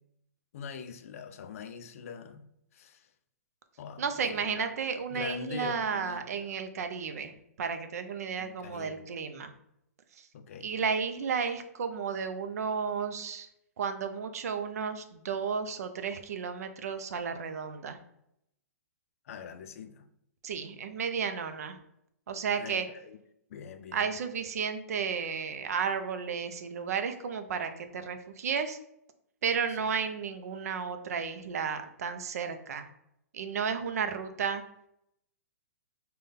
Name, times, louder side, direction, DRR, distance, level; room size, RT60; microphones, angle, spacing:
voice 1, 0.5-2.5 2.7-3.1 3.8-4.8 5.1-6.5 8.4-9.0 10.3-10.8 19.3-20.0 22.6-23.2 23.5-24.1, left 7 dB, 60° left, 0.4 m, -43 dB
voice 2, 4.0-9.5 10.2-10.3 10.6-13.5 13.8-18.0 20.4-21.8 22.3-22.9 23.9-28.8 29.4-32.8 33.3-34.6, right 6 dB, 70° right, 0.5 m, -33 dB
3.8 x 2.2 x 3.5 m
hypercardioid pair, 125°, 9 cm